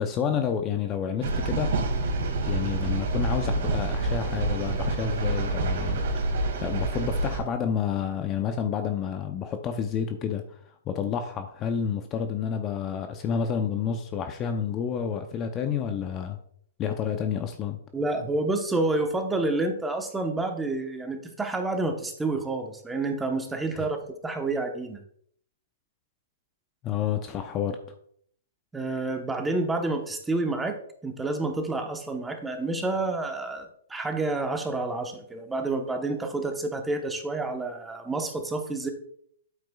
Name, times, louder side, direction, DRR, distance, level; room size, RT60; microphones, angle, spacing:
voice 1, 0.0-1.7 2.4-6.1 6.6-10.6 10.9-16.4 16.8-17.8 23.7-23.8 26.8-27.8, left 7 dB, 25° left, 7 dB, 0.6 m, -29 dB
sound 1, 1.2-7.4, right 2 dB, 55° right, 2.3 m, -27 dB
voice 2, 17.9-24.0 24.2-25.0 28.7-30.8 31.0-38.9, right 2 dB, 10° right, 4 dB, 1.1 m, -29 dB
8.9 x 8.1 x 2.4 m, 0.64 s
hypercardioid pair, 140°, 0 cm